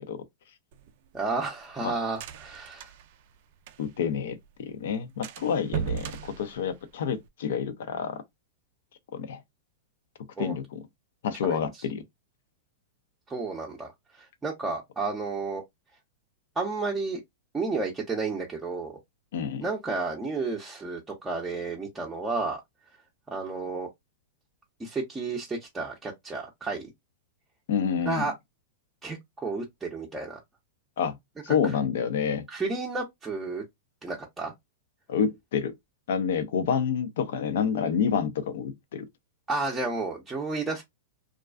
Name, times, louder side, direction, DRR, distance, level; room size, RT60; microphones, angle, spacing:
sound 1, 0.7-4.1 4.4-4.5 4.8-4.9 5.2-7.3, right 9 dB, 60° right, 0.4 m, -37 dB
voice 1, 1.1-2.9 10.4-10.6 11.4-11.6 13.3-15.6 16.6-17.2 17.5-19.0 19.6-22.6 23.3-23.9 24.8-26.9 28.1-28.3 29.0-30.4 32.5-33.6 34.0-34.5 39.5-40.8, right 3 dB, 15° right, 0.6 m, -32 dB
voice 2, 3.8-8.2 9.1-9.4 10.4-10.8 11.2-12.0 19.3-19.7 27.7-28.3 31.0-31.2 31.4-32.5 35.1-35.7 36.1-39.1, left 7 dB, 70° left, 0.5 m, -28 dB
2.4 x 2.3 x 2.3 m
hypercardioid pair, 110°, 0 cm